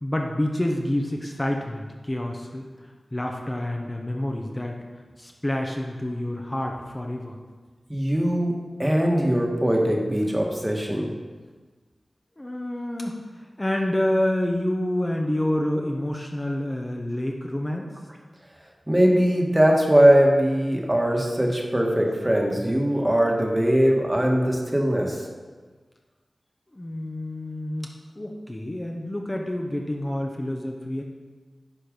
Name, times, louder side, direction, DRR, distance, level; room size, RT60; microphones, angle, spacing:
voice 1, 0.0-2.7 3.1-4.8 5.2-7.4 12.4-17.9 26.7-27.9 28.2-31.0, left 1 dB, 25° left, 1 dB, 0.9 m, -28 dB
voice 2, 7.9-11.1 18.9-25.2, equal, 20° right, 0 dB, 1.4 m, -21 dB
10.0 x 4.6 x 5.2 m, 1.4 s
wide cardioid pair, 60°, 0 cm